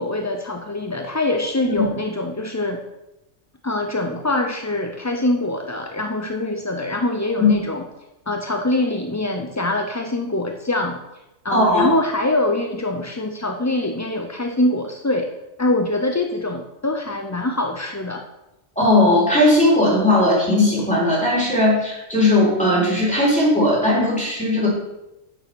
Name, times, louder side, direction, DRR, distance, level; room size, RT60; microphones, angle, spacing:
voice 1, 0.0-2.8 3.6-7.8 8.3-11.0 11.4-15.3 15.6-18.2, left 2 dB, 20° left, 3 dB, 0.4 m, -24 dB
voice 2, 11.5-11.9 18.8-24.7, left 1 dB, 5° left, -6 dB, 4.0 m, -17 dB
9.1 x 6.5 x 6.2 m, 0.94 s
omnidirectional pair, 1.3 m